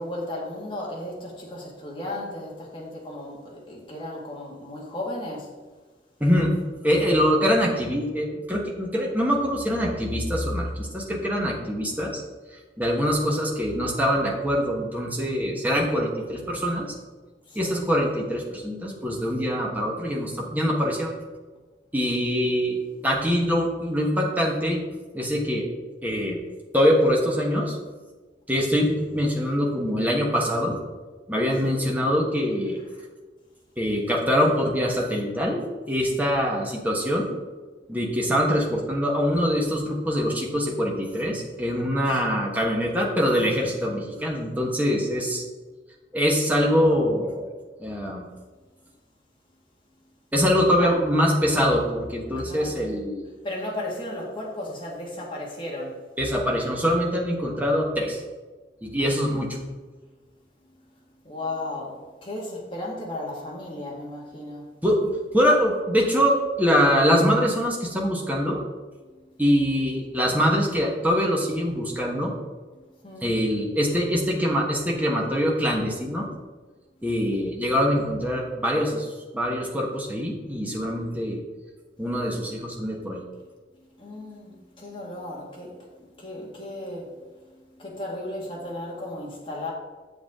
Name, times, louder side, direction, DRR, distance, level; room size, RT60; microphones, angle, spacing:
voice 1, 0.0-5.5 13.3-13.4 17.5-17.8 31.6-31.8 42.1-42.2 46.6-46.8 50.8-50.9 52.4-52.9 53.4-56.0 59.0-59.6 61.2-64.6 69.0-69.4 73.0-73.3 83.8-85.9 86.2-87.1 87.4-89.7, left 1 dB, 30° left, -3 dB, 1.9 m, -35 dB
voice 2, 6.2-6.5 6.8-12.2 12.8-16.9 17.5-21.1 21.9-22.8 23.0-24.8 25.1-25.6 26.0-26.4 26.7-27.8 28.5-30.8 31.3-32.8 33.8-37.3 37.9-45.4 46.1-47.4 47.8-48.2 50.3-53.3 56.2-58.2 58.8-59.6 64.8-68.6 69.4-72.4 73.2-76.3 77.0-81.4 82.0-83.2, equal, 10° right, -1 dB, 1.2 m, -24 dB
7.8 x 7.1 x 3.7 m, 1.3 s
head